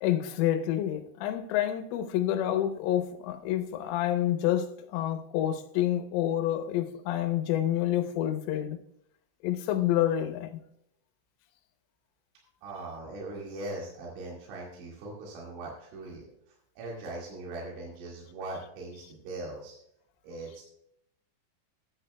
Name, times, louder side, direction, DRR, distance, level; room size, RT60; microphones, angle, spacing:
voice 1, 0.0-8.8 9.4-10.6, left 12 dB, 80° left, 3.4 m, -28 dB
voice 2, 12.6-19.8 20.2-20.6, right 2 dB, 70° right, 4.4 m, -40 dB
15.0 x 10.0 x 2.2 m
omnidirectional pair, 5.8 m